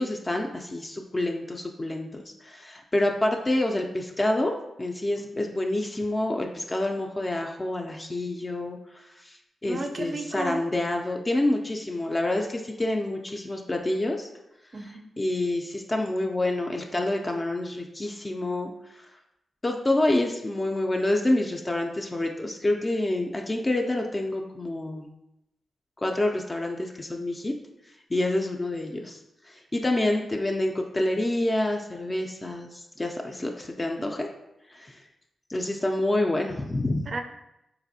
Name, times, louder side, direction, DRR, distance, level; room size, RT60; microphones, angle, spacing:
voice 1, 0.0-4.5 4.8-9.4 9.6-14.3 15.2-19.0 19.6-25.1 26.0-27.5 28.1-29.2 29.5-34.3 34.7-35.0 35.5-37.1, left 1 dB, 30° left, 2 dB, 0.4 m, -27 dB
voice 2, 9.6-10.7 14.7-15.2 34.0-34.1 37.1-37.2, right 2 dB, 55° right, 5 dB, 0.4 m, -34 dB
4.0 x 2.6 x 2.6 m, 0.87 s
cardioid pair, 60°, 0 cm